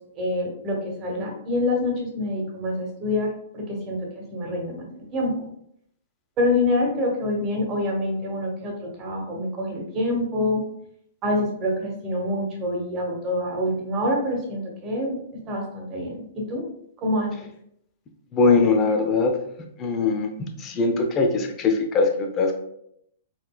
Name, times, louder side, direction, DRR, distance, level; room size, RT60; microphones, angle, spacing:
voice 1, 0.2-5.5 6.4-10.6 11.2-16.6 17.0-17.3, left 1 dB, 30° right, 0 dB, 1.2 m, -26 dB
voice 2, 18.3-19.4 19.8-22.6, left 3 dB, 30° left, 4 dB, 0.6 m, -21 dB
4.1 x 3.2 x 2.3 m, 0.72 s
hypercardioid pair, 125°, 0 cm